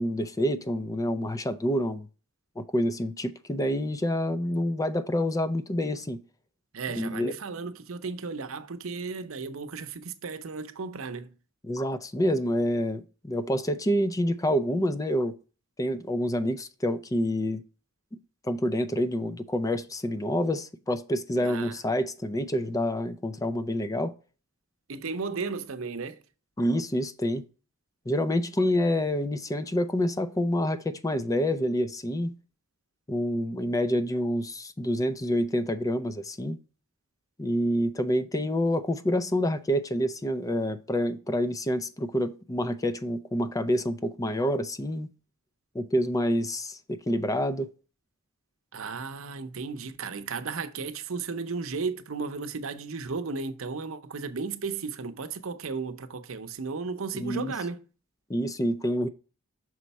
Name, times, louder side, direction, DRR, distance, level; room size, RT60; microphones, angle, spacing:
voice 1, 0.0-2.1 2.6-6.2 7.0-7.3 11.6-15.3 15.8-17.6 18.4-24.1 26.6-27.4 28.1-32.3 33.1-36.6 37.4-45.1 45.7-47.7 57.1-57.5 58.3-59.1, equal, 15° left, 0.4 m, -27 dB
voice 2, 6.7-11.3 21.4-21.8 24.9-26.2 48.7-57.8, right 4 dB, 75° right, 0.7 m, -34 dB
6.2 x 4.5 x 4.1 m
head